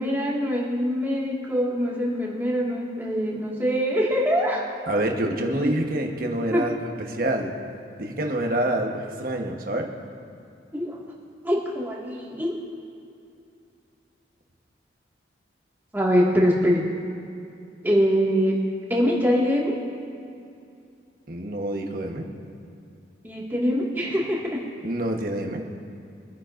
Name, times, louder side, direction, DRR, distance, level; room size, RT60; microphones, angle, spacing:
voice 1, 0.0-4.6 5.5-5.7 6.5-6.6 10.7-11.0 11.4-12.5 15.9-16.8 17.8-18.5 18.9-19.7 23.2-24.6, equal, 10° right, -4 dB, 1.9 m, -23 dB
voice 2, 4.9-7.5 8.0-9.9 21.3-22.3 24.8-25.6, right 1 dB, 50° right, 2 dB, 1.1 m, -27 dB
23.0 x 10.0 x 2.6 m, 2.5 s
head